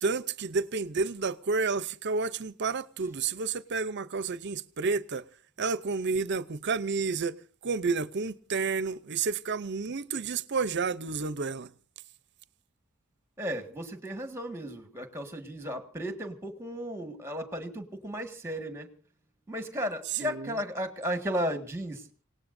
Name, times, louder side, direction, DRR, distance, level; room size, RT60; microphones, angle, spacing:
voice 1, 0.0-5.2 5.6-7.4 7.6-11.7 20.1-20.6, right 4 dB, 50° right, 0.7 m, -30 dB
voice 2, 13.4-18.9 19.5-22.0, equal, 10° right, 1.7 m, -34 dB
27.5 x 18.0 x 2.6 m
head